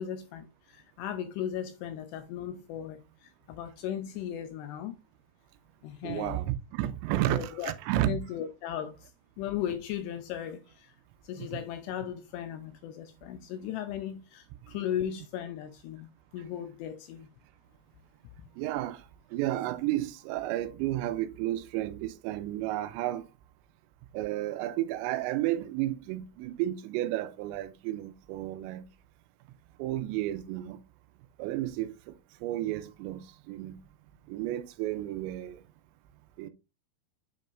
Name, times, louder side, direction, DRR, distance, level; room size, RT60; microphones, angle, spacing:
voice 1, 0.0-5.0 5.8-6.4 7.3-7.7 8.1-9.1 9.4-10.9 11.2-16.1 16.3-17.3, left 10 dB, 85° left, 2.5 m, -37 dB
voice 2, 6.0-8.2 11.4-11.5 18.6-19.0 19.3-23.2 24.1-28.9 29.8-30.8 31.4-32.2 32.4-33.8 34.3-35.6 36.4-36.5, right 14 dB, 85° right, 2.9 m, -32 dB
8.6 x 5.3 x 2.5 m
omnidirectional pair, 5.3 m